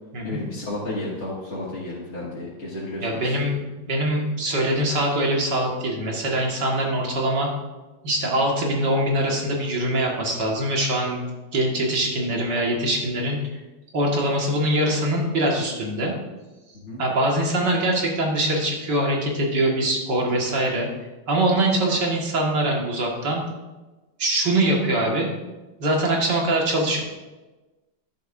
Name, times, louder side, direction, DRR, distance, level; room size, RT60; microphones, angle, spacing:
voice 1, 0.2-3.5 16.8-17.0, left 1 dB, 40° left, -8 dB, 2.1 m, -32 dB
voice 2, 3.0-7.5 8.0-11.2 11.5-13.4 13.9-16.1 17.0-20.9 21.3-23.4 24.2-25.3 25.8-27.0, right 1 dB, 70° right, -1 dB, 2.4 m, -23 dB
11.0 x 10.5 x 2.6 m, 1.1 s
omnidirectional pair, 2.0 m